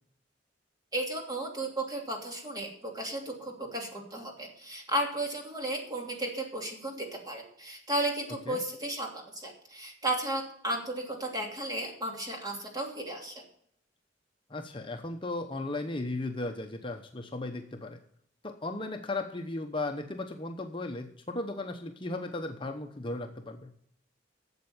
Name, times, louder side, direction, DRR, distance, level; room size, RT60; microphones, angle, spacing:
voice 1, 0.9-13.4, right 1 dB, 20° right, 1 dB, 2.8 m, -34 dB
voice 2, 14.5-18.0 18.4-23.7, left 2 dB, 30° left, 4 dB, 0.9 m, -36 dB
12.5 x 7.8 x 7.2 m, 0.66 s
head